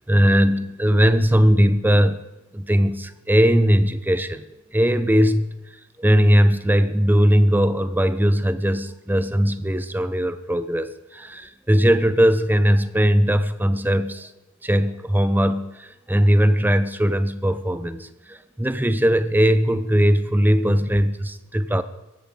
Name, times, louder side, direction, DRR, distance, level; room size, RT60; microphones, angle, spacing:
voice 1, 0.1-2.2 2.5-4.4 4.7-5.6 6.0-14.3 14.6-21.8, equal, 10° right, 12 dB, 0.8 m, -19 dB
18.5 x 14.5 x 5.2 m, 0.98 s
head